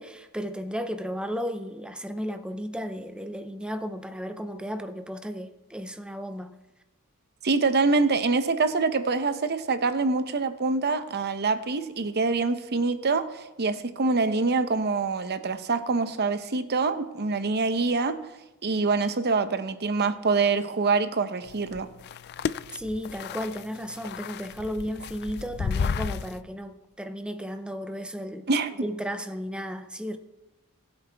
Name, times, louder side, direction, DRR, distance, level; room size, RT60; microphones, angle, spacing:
voice 1, 0.0-6.6 22.7-28.5 28.8-30.2, equal, 5° right, 0.5 m, -34 dB
voice 2, 7.4-13.3 13.6-18.2 18.6-21.9 28.5-28.7, right 4 dB, 50° right, 0.8 m, -25 dB
sound 1, 21.5-26.4, left 6 dB, 50° left, 0.4 m, -33 dB
20.5 x 8.0 x 3.4 m
head